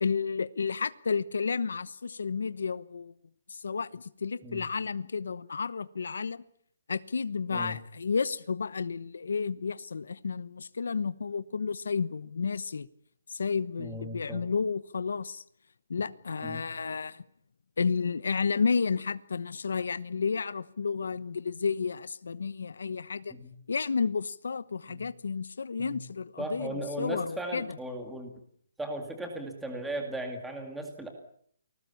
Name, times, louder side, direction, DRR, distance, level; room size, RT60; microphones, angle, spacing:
voice 1, 0.0-3.1 3.5-6.4 6.9-12.9 13.3-15.4 15.9-17.2 17.8-23.3 23.7-27.7, left 5 dB, 75° left, 1.0 m, -31 dB
voice 2, 13.8-14.4 16.4-16.6 23.3-23.5 24.9-25.0 25.8-26.0 26.4-28.3 28.8-31.1, right 1 dB, 5° right, 2.2 m, -37 dB
29.0 x 20.0 x 7.1 m
hypercardioid pair, 180°, 0 cm